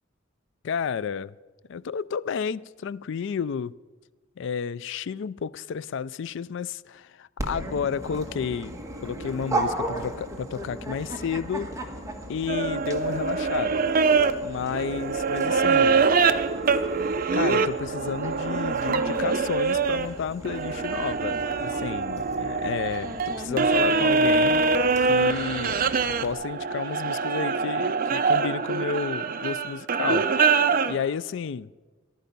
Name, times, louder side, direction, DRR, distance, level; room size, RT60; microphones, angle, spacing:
voice 1, 0.6-1.3 1.7-3.7 4.4-8.7 9.0-11.7 12.3-13.9 14.4-16.1 17.3-24.6 25.1-25.9 26.2-30.5 30.9-31.7, left 6 dB, 65° left, 0.4 m, -31 dB
Dog, 7.4-26.3, right 1 dB, 15° right, 1.4 m, -37 dB
sound 1, 12.5-20.1 20.4-31.0, right 4 dB, 45° right, 0.6 m, -24 dB
14.5 x 11.5 x 5.3 m
head